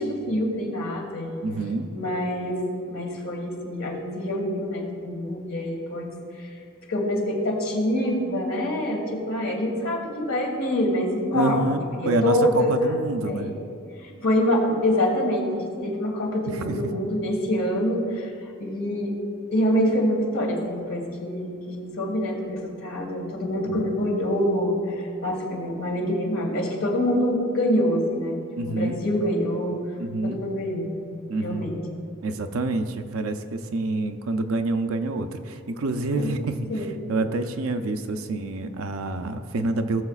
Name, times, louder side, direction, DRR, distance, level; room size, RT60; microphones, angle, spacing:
voice 1, 0.0-1.4 1.9-2.6 2.9-6.1 6.4-6.5 6.9-11.6 11.9-12.9 13.2-13.6 14.0-18.3 18.6-19.1 19.5-28.4 28.7-29.8 30.2-30.9 31.4-31.8 36.2-36.3 36.7-37.0, left 1 dB, 70° left, 0 dB, 1.9 m, -25 dB
voice 2, 1.4-1.9 11.3-13.5 16.5-16.8 23.7-23.8 28.6-29.0 30.0-30.4 31.3-31.7 32.2-40.0, right 2 dB, 75° right, 7 dB, 0.6 m, -27 dB
17.5 x 6.9 x 2.4 m, 2.4 s
head